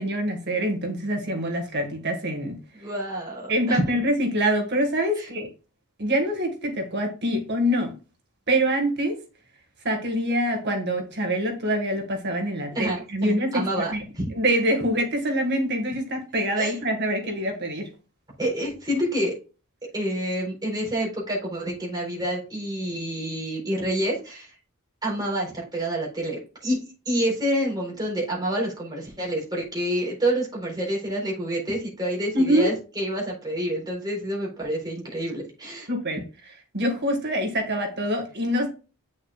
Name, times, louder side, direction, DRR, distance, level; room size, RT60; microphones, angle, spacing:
voice 1, 0.0-2.6 3.5-5.5 6.0-7.9 8.5-9.2 9.8-14.0 14.3-17.9 32.3-32.7 35.9-38.7, equal, 50° right, 4 dB, 1.7 m, -25 dB
voice 2, 2.7-3.9 5.2-5.3 12.7-14.3 16.6-16.8 18.4-19.3 19.9-24.5 25.0-26.8 27.1-35.9, right 1 dB, 20° right, -3 dB, 4.0 m, -28 dB
8.5 x 6.4 x 2.4 m, 0.33 s
head